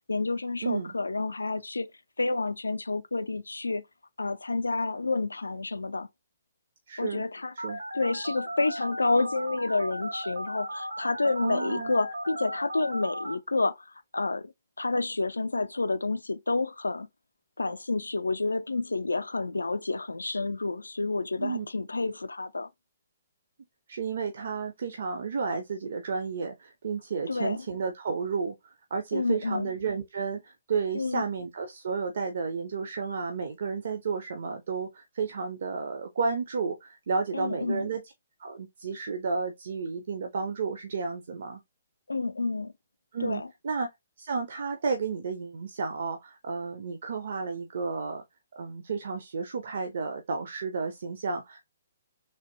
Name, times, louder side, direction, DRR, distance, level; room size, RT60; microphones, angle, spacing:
voice 1, 0.1-1.9 2.2-3.8 4.2-6.1 7.0-7.5 7.9-14.5 14.8-17.1 17.6-22.7 27.3-27.7 29.1-29.7 30.9-31.2 37.3-37.9 42.1-42.7 43.2-43.5, left 3 dB, 75° left, 0.3 m, -29 dB
voice 2, 0.6-0.9 6.9-7.2 7.6-7.8 11.4-11.9 21.4-21.7 23.9-38.0 38.4-41.6 43.1-43.9 44.2-48.2 48.6-51.6, right 5 dB, 55° right, 0.5 m, -32 dB
Telephone, 7.6-13.3, equal, 75° right, 0.9 m, -36 dB
3.3 x 2.5 x 2.6 m
figure-of-eight pair, 125°, 0 cm